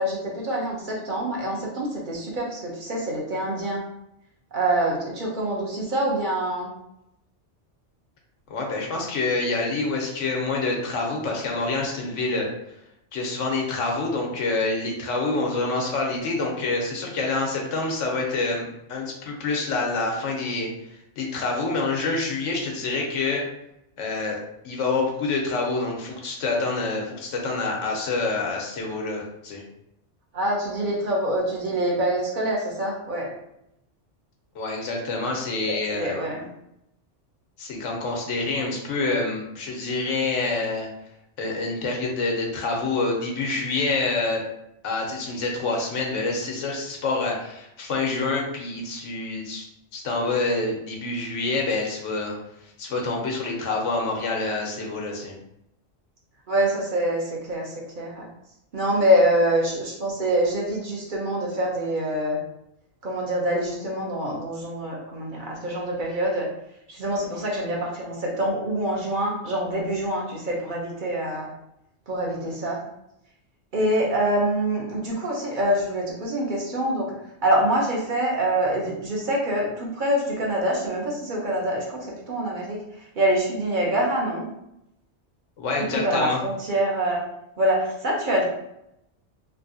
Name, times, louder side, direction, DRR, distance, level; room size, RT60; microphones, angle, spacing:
voice 1, 0.0-3.8 4.5-6.7 30.3-33.3 35.7-36.5 56.5-58.3 58.7-62.4 63.0-66.5 66.9-71.5 72.1-72.8 73.7-77.1 77.4-84.5 85.8-87.2 87.6-88.4, right 1 dB, 50° right, -2 dB, 0.9 m, -25 dB
voice 2, 8.5-12.5 13.1-20.7 21.2-23.5 24.0-24.4 24.6-29.6 34.5-36.1 37.6-40.9 41.4-44.4 44.8-49.7 49.9-52.3 52.6-55.3 85.6-86.4, left 3 dB, 90° left, 0 dB, 1.1 m, -27 dB
3.4 x 2.6 x 2.6 m, 0.81 s
omnidirectional pair, 1.2 m